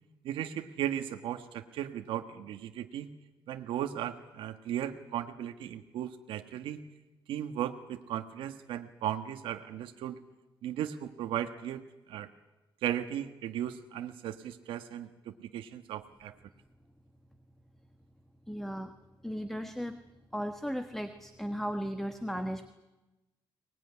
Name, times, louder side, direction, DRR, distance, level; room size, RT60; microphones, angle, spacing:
voice 1, 0.2-3.1 3.5-6.8 7.3-10.2 10.6-11.8 12.1-12.3 12.8-16.3, right 11 dB, 85° right, 6 dB, 1.4 m, -36 dB
voice 2, 18.5-18.9 19.2-20.0 20.3-22.7, equal, 5° left, 8 dB, 1.3 m, -36 dB
24.0 x 19.5 x 9.7 m, 1.1 s
cardioid pair, 130°, 9 cm